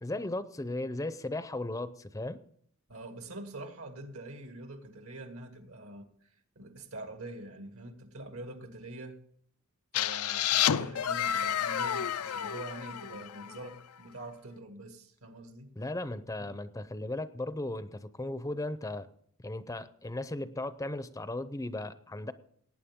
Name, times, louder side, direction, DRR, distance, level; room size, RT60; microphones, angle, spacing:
voice 1, 0.0-2.4 15.8-19.1 19.4-22.3, left 2 dB, 15° left, 12 dB, 0.6 m, -36 dB
voice 2, 2.9-9.2 9.9-15.7 16.4-16.5, right 1 dB, 70° right, 5 dB, 2.1 m, -45 dB
sound 1, 9.9-13.7, left 10 dB, 85° left, 0.5 m, -30 dB
18.0 x 9.6 x 3.7 m, 0.63 s
head